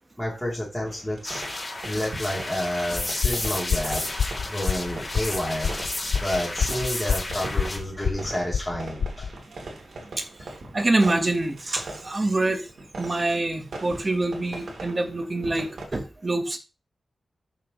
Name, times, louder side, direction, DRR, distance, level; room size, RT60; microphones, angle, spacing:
voice 1, 0.2-1.4 1.8-4.0 4.4-5.7 6.2-9.3, left 1 dB, 5° left, -5 dB, 3.5 m, -30 dB
sound 1, 0.9-15.8, right 2 dB, 65° right, 3.7 m, -41 dB
sound 2, 1.2-7.8, left 2 dB, 25° left, 3.0 m, -32 dB
sound 3, 3.0-9.3, left 6 dB, 85° left, 0.5 m, -28 dB
voice 2, 10.2-12.7 13.0-16.6, right 2 dB, 25° right, 6 dB, 1.6 m, -26 dB
13.5 x 7.2 x 3.3 m, 0.30 s
wide cardioid pair, 155°, 0 cm